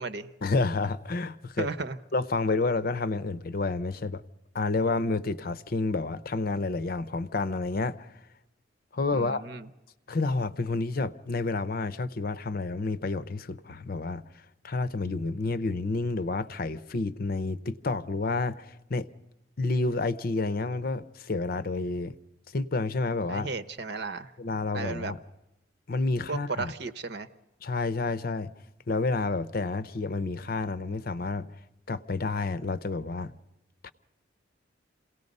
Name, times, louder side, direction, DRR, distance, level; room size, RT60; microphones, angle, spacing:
voice 1, 0.4-1.7 2.1-4.2 4.5-8.1 8.9-9.4 10.1-14.2 14.6-19.1 19.6-22.2 22.5-23.5 24.4-25.2 25.9-26.7 27.6-28.5 28.9-31.5 31.9-33.3 33.8-33.9, left 3 dB, 50° left, 0.7 m, -29 dB
voice 2, 1.6-2.0 9.1-9.7 23.3-24.3 24.7-25.1 26.3-27.3, right 4 dB, 60° right, 0.9 m, -34 dB
27.5 x 18.0 x 5.4 m
head